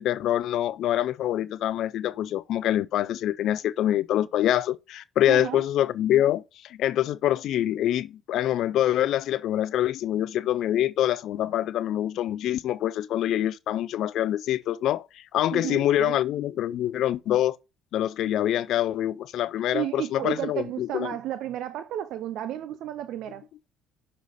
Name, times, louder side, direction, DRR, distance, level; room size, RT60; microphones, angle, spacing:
voice 1, 0.0-17.6 17.9-21.1, left 12 dB, 65° left, 0.4 m, -25 dB
voice 2, 5.3-5.6 15.5-16.2 19.7-23.5, right 12 dB, 70° right, 0.5 m, -32 dB
6.3 x 5.5 x 4.1 m
supercardioid pair, 80°, 0 cm